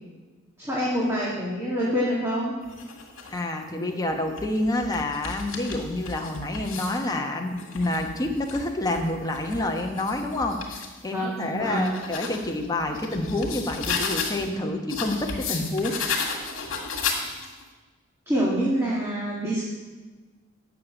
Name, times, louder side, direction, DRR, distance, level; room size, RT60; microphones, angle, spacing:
voice 1, 0.6-2.5 11.1-11.9 18.3-19.6, equal, 15° right, -6 dB, 1.9 m, -26 dB
sound 1, 2.6-3.4 4.1-7.0 7.5-10.9 11.4-14.5 14.9-17.6, left 5 dB, 75° left, 2.0 m, -34 dB
voice 2, 3.3-16.0, left 1 dB, 20° left, 2 dB, 1.1 m, -28 dB
9.4 x 6.7 x 7.0 m, 1.3 s
head